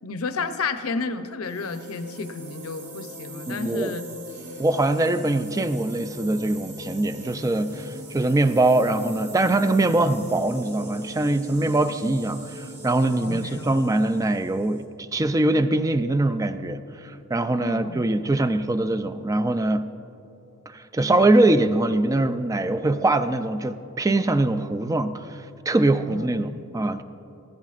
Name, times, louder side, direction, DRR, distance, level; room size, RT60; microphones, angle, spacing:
voice 1, 0.0-4.1 13.2-13.7 17.6-18.5 26.1-26.6, left 4 dB, 75° left, 10 dB, 0.6 m, -32 dB
sound 1, 1.4-14.9, equal, 50° right, 2.1 m, -40 dB
voice 2, 3.5-3.9 4.6-14.9 15.1-19.9 20.7-27.0, right 2 dB, 15° right, 11 dB, 0.3 m, -23 dB
15.5 x 14.5 x 2.5 m, 2.9 s
head